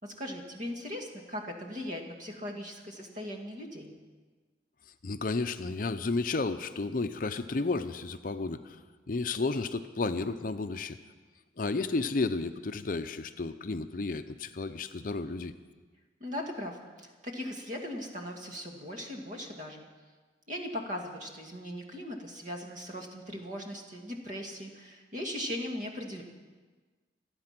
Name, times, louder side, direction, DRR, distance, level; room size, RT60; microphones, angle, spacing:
voice 1, 0.0-3.9 16.2-19.9 20.5-26.2, left 1 dB, 40° right, 1 dB, 2.2 m, -39 dB
voice 2, 5.0-8.8 9.1-11.0 11.6-15.5, left 3 dB, 45° left, 9 dB, 0.6 m, -32 dB
26.5 x 8.8 x 6.0 m, 1.4 s
head